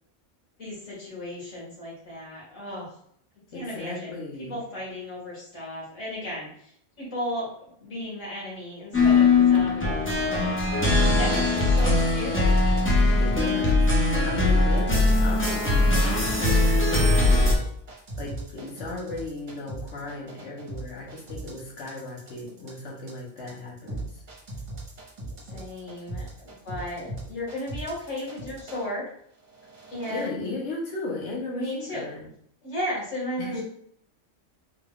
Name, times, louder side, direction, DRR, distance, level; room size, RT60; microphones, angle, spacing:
voice 1, 0.6-2.9 3.5-4.1 4.5-7.5 7.8-10.6 11.2-12.8 25.5-29.1 29.9-30.4 31.5-32.1 32.6-33.6, left 1 dB, 85° left, -7 dB, 2.1 m, -35 dB
voice 2, 3.5-4.6 13.0-17.5 18.2-24.2 30.1-32.3 33.4-33.6, left 2 dB, 70° left, -4 dB, 1.4 m, -36 dB
sound 1, 8.9-17.5, left 2 dB, 15° left, 0.6 m, -21 dB
sound 2, 11.1-13.8 14.3-15.6 15.9-28.9 29.4-30.3, right 2 dB, 40° right, 1.1 m, -38 dB
4.0 x 2.3 x 3.6 m, 0.68 s
omnidirectional pair, 1.3 m